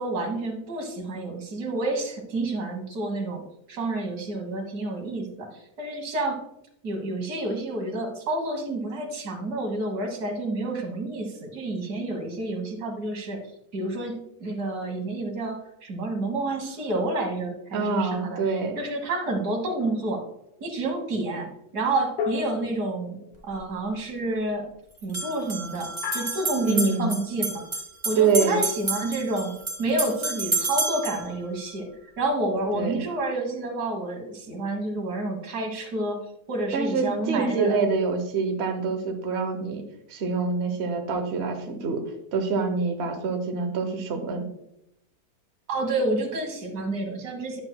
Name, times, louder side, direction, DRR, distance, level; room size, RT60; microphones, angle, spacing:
voice 1, 0.0-5.5 5.8-6.4 6.8-13.4 13.7-18.4 18.8-20.2 20.6-23.2 23.4-24.7 25.0-27.5 28.1-29.5 29.8-31.9 32.2-36.2 36.5-37.8 45.7-47.6, right 2 dB, 85° right, 3 dB, 1.9 m, -29 dB
voice 2, 17.7-18.8 26.7-27.1 28.2-28.6 32.7-33.0 36.7-39.8 40.1-42.0 42.3-44.4, right 4 dB, 50° right, 5 dB, 1.1 m, -25 dB
sound 1, 19.8-20.4 22.2-23.5 26.0-26.9, left 7 dB, 80° left, 1.2 m, -35 dB
sound 2, 23.3-23.4 25.0-31.2, right 2 dB, 30° right, 1.4 m, -30 dB
10.5 x 6.5 x 2.2 m, 0.79 s
omnidirectional pair, 1.6 m